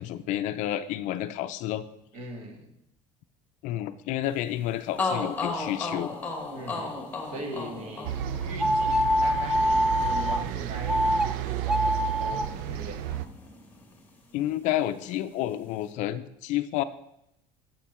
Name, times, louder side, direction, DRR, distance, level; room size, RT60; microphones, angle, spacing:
voice 1, 0.0-1.8 3.6-6.1 14.3-16.8, left 13 dB, 55° left, 12 dB, 0.5 m, -30 dB
voice 2, 2.1-2.7 6.5-11.0 11.5-13.0, right 1 dB, 50° right, 3 dB, 1.7 m, -41 dB
sound 1, 4.6-4.7 5.0-12.8 13.1-14.3, left 3 dB, 10° left, 1.2 m, -36 dB
sound 2, 8.0-13.3, right 11 dB, 65° right, 0.5 m, -32 dB
sound 3, 8.6-10.4 10.9-11.3 11.6-12.4, equal, 5° right, 0.3 m, -24 dB
8.3 x 7.5 x 4.3 m, 0.81 s
cardioid pair, 170°, 15 cm